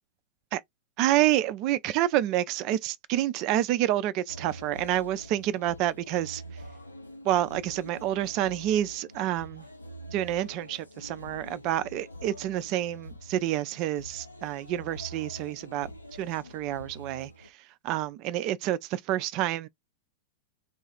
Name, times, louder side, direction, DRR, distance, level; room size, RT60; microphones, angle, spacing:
voice 1, 1.0-6.4 7.2-9.7 10.1-15.9 16.2-17.5 17.8-19.7, right 13 dB, 40° right, 0.4 m, -28 dB
sound 1, 4.3-17.5, equal, 85° left, 0.6 m, -45 dB
2.7 x 2.4 x 4.2 m
figure-of-eight pair, 95°, 0 cm